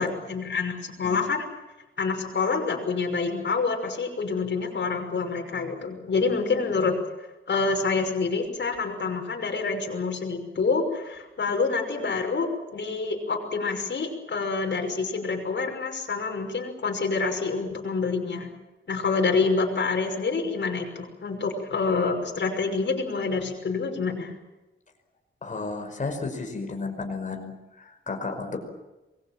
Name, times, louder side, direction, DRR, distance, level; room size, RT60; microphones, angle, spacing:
voice 1, 0.0-1.5 2.0-6.9 7.5-18.5 18.9-24.3, left 4 dB, 65° left, 2 dB, 6.0 m, -27 dB
voice 2, 25.4-28.6, left 3 dB, 40° left, 4 dB, 5.3 m, -33 dB
28.0 x 22.0 x 7.5 m, 1.0 s
wide cardioid pair, 165°, 20 cm